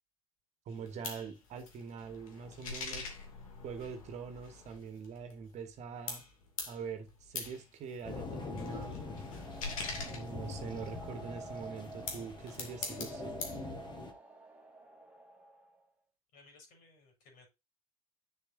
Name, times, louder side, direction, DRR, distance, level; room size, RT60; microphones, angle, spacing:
sound 1, 0.7-5.8 6.1-11.1 11.8-13.6, left 4 dB, 70° left, 2.5 m, -44 dB
voice 1, 0.7-3.1 3.6-6.2 6.7-9.0 10.0-13.4, right 6 dB, 40° right, 1.8 m, -44 dB
sound 2, 8.0-14.1, left 3 dB, 25° left, 2.0 m, -44 dB
sound 3, 8.2-15.9, right 1 dB, 5° right, 2.2 m, -50 dB
voice 2, 16.3-17.5, left 3 dB, 50° left, 5.7 m, -60 dB
9.1 x 7.0 x 2.7 m
figure-of-eight pair, 80°, 18 cm